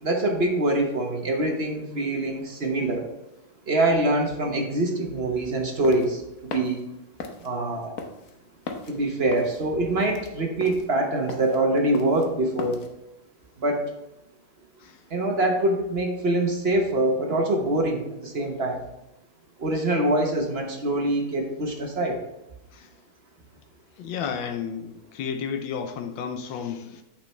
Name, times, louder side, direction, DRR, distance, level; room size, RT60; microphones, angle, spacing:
voice 1, 0.0-3.1 3.7-6.8 7.4-7.9 8.9-12.8 13.6-13.9 15.1-18.8 19.6-22.2, right 1 dB, 40° right, 2 dB, 1.1 m, -24 dB
sound 1, 5.6-12.9, left 4 dB, 55° left, 1.1 m, -38 dB
voice 2, 24.0-27.0, left 7 dB, 85° left, 6 dB, 1.5 m, -32 dB
8.6 x 6.7 x 3.2 m, 0.90 s
omnidirectional pair, 2.0 m